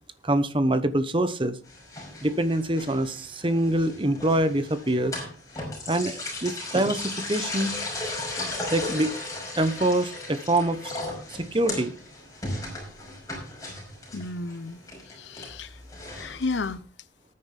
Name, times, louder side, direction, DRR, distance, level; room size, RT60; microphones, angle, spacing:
voice 1, 0.2-1.6 2.2-5.2 5.9-7.8 8.7-9.2 9.6-10.9 11.4-11.9, right 1 dB, 25° right, 1.0 m, -25 dB
sound 1, 1.7-16.8, left 2 dB, 15° left, 5.6 m, -36 dB
voice 2, 14.1-14.8 15.1-15.8 16.1-16.8, left 3 dB, 65° left, 0.7 m, -32 dB
19.0 x 9.7 x 3.4 m
head